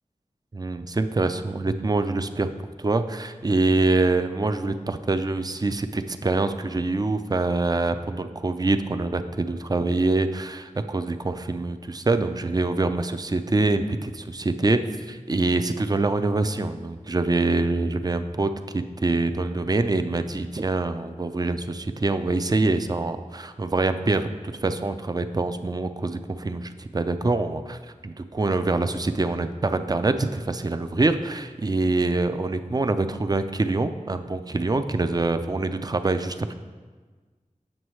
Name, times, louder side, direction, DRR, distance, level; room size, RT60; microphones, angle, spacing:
voice 1, 0.5-2.5 2.8-14.8 15.1-36.5, right 3 dB, 30° right, 9 dB, 0.4 m, -25 dB
7.4 x 6.1 x 3.1 m, 1.4 s
wide cardioid pair, 50°, 14 cm